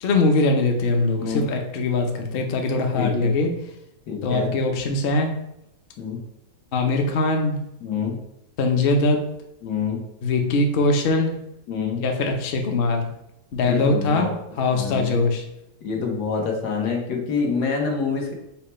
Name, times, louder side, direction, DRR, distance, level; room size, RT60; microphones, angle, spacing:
voice 1, 0.0-3.5 4.2-5.3 6.7-7.6 8.6-9.2 10.2-11.4 12.0-13.1 13.5-14.3 14.6-15.4, left 3 dB, 55° left, 3 dB, 0.6 m, -21 dB
voice 2, 3.0-3.3 4.1-4.5 6.0-6.2 7.8-8.2 9.6-10.0 11.7-12.0 13.6-14.3 14.7-15.3 15.8-18.3, left 5 dB, 80° left, 0 dB, 1.5 m, -26 dB
5.7 x 2.2 x 4.2 m, 0.83 s
omnidirectional pair, 1.7 m